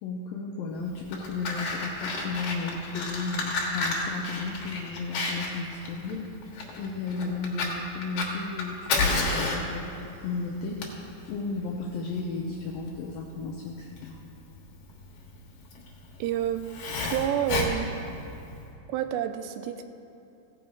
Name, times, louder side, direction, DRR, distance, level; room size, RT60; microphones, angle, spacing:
voice 1, 0.0-6.3 6.8-10.8 11.3-14.2, left 4 dB, 90° left, -1 dB, 2.0 m, -34 dB
Fire, 0.9-18.7, left 3 dB, 60° left, 2.1 m, -32 dB
voice 2, 16.2-16.7 17.0-17.9 18.9-19.8, right 10 dB, 90° right, 8 dB, 2.8 m, -28 dB
16.0 x 6.4 x 4.5 m, 2.8 s
omnidirectional pair, 4.9 m